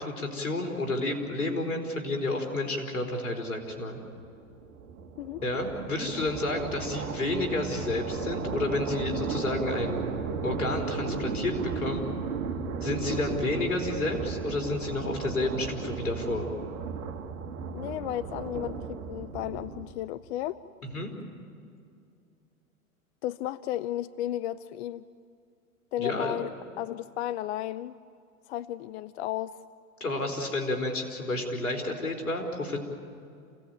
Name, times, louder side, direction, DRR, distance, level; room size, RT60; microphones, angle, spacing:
voice 1, 0.0-4.0 5.4-10.0 10.4-12.1 12.8-16.5 20.9-21.1 26.0-26.4 30.0-32.8, left 2 dB, 85° left, 3 dB, 4.5 m, -30 dB
sound 1, 3.9-20.2, right 5 dB, 75° right, 2.1 m, -35 dB
voice 2, 17.7-20.6 23.2-25.1 25.9-26.5 26.8-28.0 28.5-29.5, left 13 dB, 50° left, 16 dB, 0.6 m, -33 dB
27.5 x 17.5 x 9.2 m, 2.4 s
hypercardioid pair, 110°, 42 cm